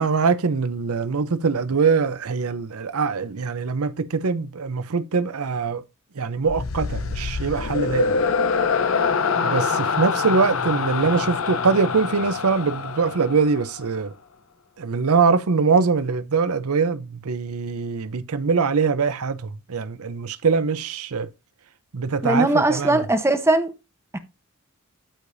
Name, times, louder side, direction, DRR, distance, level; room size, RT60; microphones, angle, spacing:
voice 1, 0.0-5.8 6.2-8.2 9.4-14.1 14.8-21.3 21.9-23.0, right 5 dB, 85° right, 0.6 m, -23 dB
sound 1, 6.5-13.8, left 5 dB, 65° left, 0.7 m, -25 dB
voice 2, 22.2-23.7 24.1-24.2, right 2 dB, 10° right, 0.9 m, -20 dB
13.0 x 4.9 x 2.7 m
head